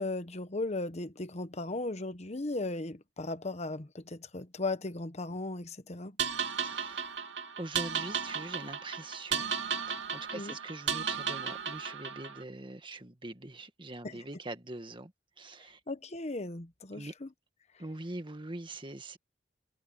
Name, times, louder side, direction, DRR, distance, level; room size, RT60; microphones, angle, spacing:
voice 1, 0.0-6.2 10.3-10.5 14.0-14.2 15.9-17.3, left 2 dB, 40° left, 1.2 m, -36 dB
sound 1, 6.2-12.4, right 6 dB, 75° right, 2.8 m, -35 dB
voice 2, 6.6-7.1 7.6-9.5 9.8-15.1 15.4-15.8 16.9-17.1 17.8-19.2, right 2 dB, 30° right, 1.7 m, -43 dB
head